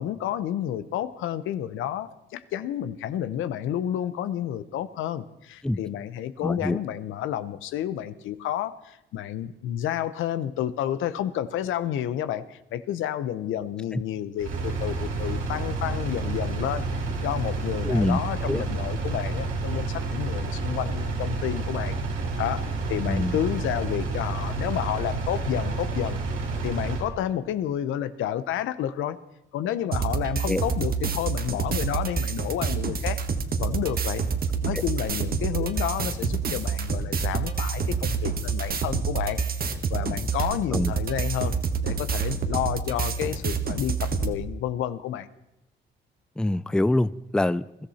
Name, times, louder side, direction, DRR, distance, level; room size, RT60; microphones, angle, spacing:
voice 1, 0.0-22.0 22.4-26.2 26.6-29.2 29.5-33.2 33.6-34.2 34.6-41.5 41.8-45.3, left 11 dB, 85° left, 0.9 m, -30 dB
voice 2, 6.4-6.8 13.9-14.0 17.8-18.2 18.5-18.6 23.1-23.4 30.5-30.6 34.7-34.8 40.7-40.9 46.4-47.7, left 1 dB, 5° left, 0.4 m, -25 dB
Engine, 14.4-27.1, right 3 dB, 85° right, 2.8 m, -29 dB
sound 1, 29.9-44.3, right 5 dB, 50° right, 1.4 m, -28 dB
21.5 x 13.5 x 4.3 m
cardioid pair, 90°, 20 cm